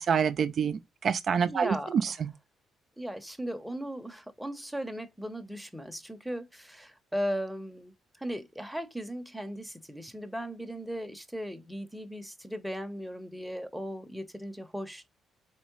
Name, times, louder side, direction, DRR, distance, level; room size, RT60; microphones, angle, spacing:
voice 1, 0.0-1.8 2.0-2.3, right 7 dB, 55° right, 0.4 m, -27 dB
voice 2, 1.5-2.1 3.0-7.9 8.2-15.0, equal, ahead, 0.8 m, -37 dB
4.5 x 3.1 x 3.0 m
cardioid pair, 90°, 0 cm